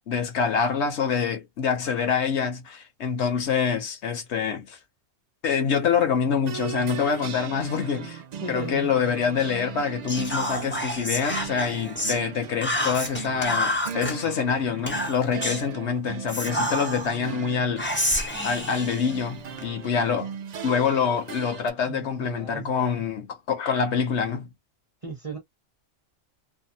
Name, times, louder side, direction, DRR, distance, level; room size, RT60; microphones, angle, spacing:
voice 1, 0.1-4.8 5.4-8.2 8.5-20.3 20.6-24.5, left 6 dB, 65° left, 0.9 m, -26 dB
sound 1, 6.4-21.7, right 8 dB, 80° right, 0.3 m, -38 dB
voice 2, 8.4-8.9 21.8-23.0 25.0-25.4, right 3 dB, 30° right, 0.8 m, -36 dB
Whispering, 10.1-12.2 12.6-14.1 14.9-15.7 16.3-17.2 17.8-19.7, left 1 dB, 15° left, 0.5 m, -29 dB
2.7 x 2.2 x 2.7 m
omnidirectional pair, 1.3 m